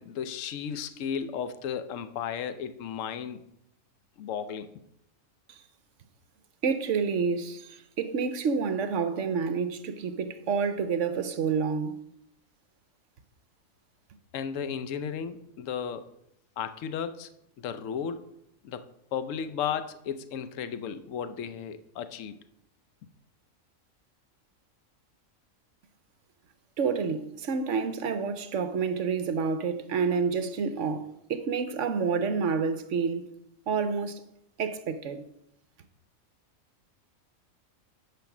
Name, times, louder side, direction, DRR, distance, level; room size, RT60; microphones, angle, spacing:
voice 1, 0.0-3.5 4.2-4.7 14.3-16.1 16.6-17.3 17.6-18.3 18.6-22.4, left 7 dB, 70° left, 1.0 m, -34 dB
voice 2, 6.6-12.0 26.8-33.2 33.7-34.2 34.6-35.2, right 5 dB, 65° right, 1.0 m, -29 dB
10.5 x 5.2 x 6.0 m
omnidirectional pair, 1.4 m